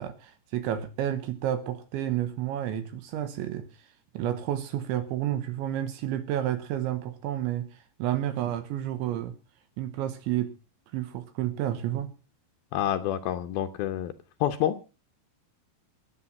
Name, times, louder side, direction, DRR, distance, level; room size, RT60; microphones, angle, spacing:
voice 1, 0.0-3.9 4.1-9.3 9.8-10.5 10.9-12.1, right 11 dB, 75° right, 11 dB, 3.3 m, -30 dB
voice 2, 12.7-14.1 14.4-14.8, left 11 dB, 90° left, 6 dB, 2.1 m, -28 dB
19.5 x 8.4 x 5.8 m, 0.34 s
omnidirectional pair, 5.5 m